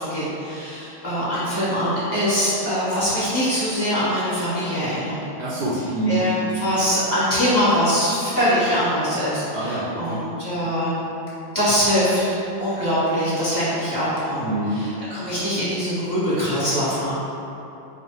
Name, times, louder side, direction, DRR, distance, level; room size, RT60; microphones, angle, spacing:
voice 1, 0.0-5.2 6.0-10.9 11.5-12.2 12.6-17.1, equal, 25° left, -12 dB, 1.3 m, -23 dB
voice 2, 5.4-6.3 9.5-10.2 14.4-14.8, right 2 dB, 75° right, -6 dB, 0.9 m, -26 dB
4.2 x 2.5 x 4.4 m, 3.0 s
omnidirectional pair, 2.3 m